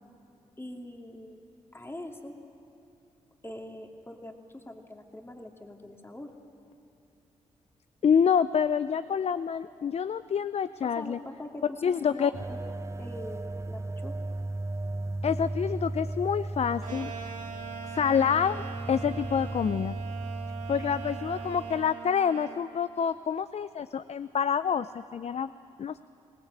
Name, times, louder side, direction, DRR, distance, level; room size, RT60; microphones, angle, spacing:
voice 1, 0.6-1.4 1.7-2.4 3.4-6.3 10.8-12.7 13.0-14.2, left 1 dB, 15° left, 2 dB, 2.5 m, -43 dB
voice 2, 8.0-11.2 11.8-12.3 15.2-17.1 17.8-20.0 20.7-25.5 25.8-26.0, left 7 dB, 50° left, 14 dB, 0.5 m, -27 dB
sound 1, 12.3-21.9, right 2 dB, 20° right, 0.6 m, -36 dB
sound 2, 16.8-22.6, right 7 dB, 65° right, 2.4 m, -41 dB
22.5 x 19.0 x 7.9 m, 2.7 s
supercardioid pair, 45°, 14 cm